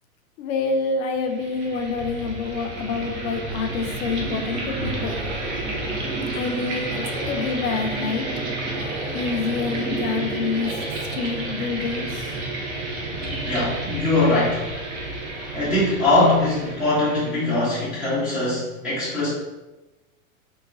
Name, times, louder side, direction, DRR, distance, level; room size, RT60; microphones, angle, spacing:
voice 1, 0.4-5.2 6.3-8.3 9.1-10.7 11.1-12.3, left 4 dB, 70° left, 4 dB, 0.5 m, -27 dB
sound 1, 1.2-17.9, right 2 dB, 55° right, 0.8 m, -31 dB
sound 2, 4.1-11.4, right 2 dB, 80° right, 0.8 m, -37 dB
voice 2, 13.4-14.6 15.5-19.3, left 2 dB, 5° right, -13 dB, 0.3 m, -21 dB
3.1 x 2.0 x 2.3 m, 1.1 s
hypercardioid pair, 125°, 42 cm